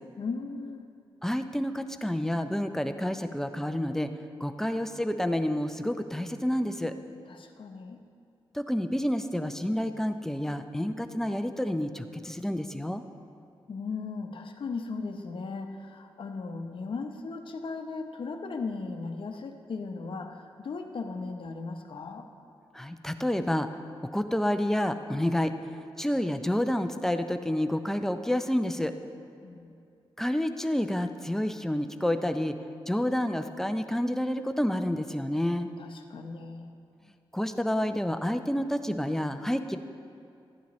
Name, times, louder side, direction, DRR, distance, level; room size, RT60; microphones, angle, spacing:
voice 1, 0.2-0.8 7.3-8.0 13.7-22.2 29.4-29.7 35.8-36.7, left 4 dB, 60° left, 4 dB, 0.8 m, -37 dB
voice 2, 1.2-4.1 4.4-6.9 8.5-13.0 22.7-23.7 24.1-25.5 26.0-28.9 30.2-32.6 32.9-35.7 37.3-39.8, left 1 dB, 5° left, 8 dB, 0.5 m, -29 dB
13.5 x 9.9 x 3.1 m, 2.5 s
cardioid pair, 80°, 10 cm